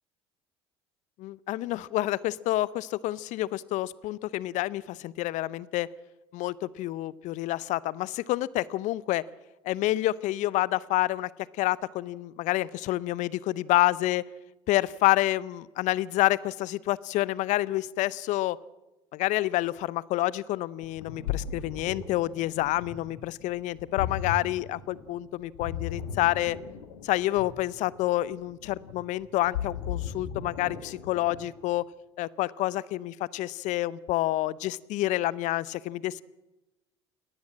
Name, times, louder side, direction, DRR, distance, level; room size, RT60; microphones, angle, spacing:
voice 1, 1.2-5.9 6.3-9.2 9.6-11.3 11.6-14.2 14.7-18.6 19.1-26.6 27.0-31.8 32.2-36.2, left 16 dB, 60° left, 21 dB, 0.7 m, -28 dB
Ocean, 20.8-31.6, left 8 dB, 80° left, 2.0 m, -37 dB
21.0 x 17.5 x 7.5 m, 1.0 s
hypercardioid pair, 65°, 14 cm